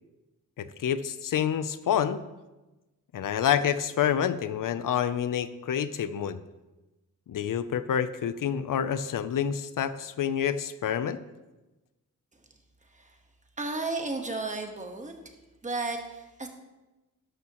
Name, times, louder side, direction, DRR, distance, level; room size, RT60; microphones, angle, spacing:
voice 1, 0.6-2.2 3.1-6.4 7.3-11.2, left 9 dB, 75° left, 13 dB, 0.6 m, -28 dB
voice 2, 13.6-15.1 15.6-16.5, right 3 dB, 20° right, 4 dB, 1.3 m, -33 dB
12.5 x 11.5 x 3.0 m, 1.1 s
wide cardioid pair, 140°, 33 cm